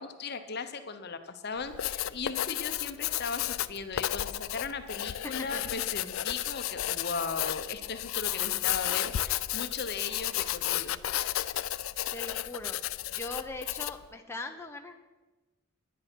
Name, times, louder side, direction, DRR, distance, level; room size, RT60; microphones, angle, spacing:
voice 1, 0.0-11.0, left 4 dB, 50° left, 9 dB, 0.8 m, -37 dB
Writing, 1.6-14.1, left 13 dB, 75° left, 0.4 m, -33 dB
voice 2, 5.2-5.8 12.1-12.8 13.1-14.9, left 2 dB, 10° left, 3 dB, 0.7 m, -40 dB
10.5 x 10.0 x 6.1 m, 1.2 s
head